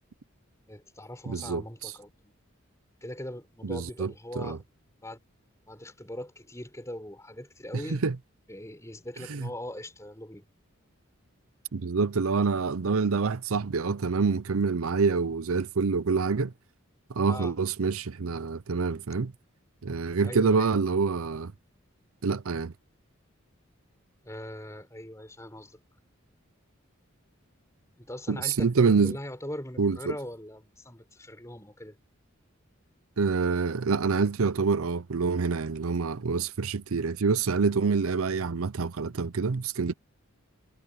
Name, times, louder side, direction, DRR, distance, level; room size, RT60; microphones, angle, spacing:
voice 1, 0.7-2.3 3.0-4.6 5.0-5.2 5.7-8.0 8.5-10.5 17.3-17.5 20.2-20.7 24.2-25.8 28.0-32.0, left 1 dB, 15° left, 5.9 m, -41 dB
voice 2, 1.3-1.9 3.6-4.6 7.9-8.2 9.3-9.5 11.7-16.5 17.1-19.3 19.8-21.5 22.2-22.7 28.3-29.2 29.8-30.1 33.2-39.9, right 4 dB, 80° right, 0.6 m, -26 dB
head